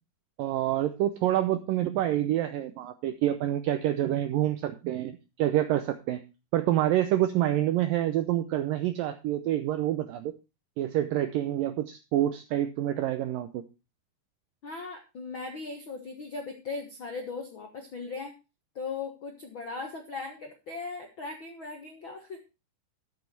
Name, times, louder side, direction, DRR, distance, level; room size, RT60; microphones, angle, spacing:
voice 1, 0.4-6.2 6.5-10.3 10.8-13.6, right 13 dB, 80° right, 9 dB, 2.0 m, -27 dB
voice 2, 14.6-18.3 18.7-22.4, left 4 dB, 85° left, 3 dB, 1.1 m, -38 dB
13.0 x 7.4 x 4.5 m, 0.29 s
omnidirectional pair, 4.8 m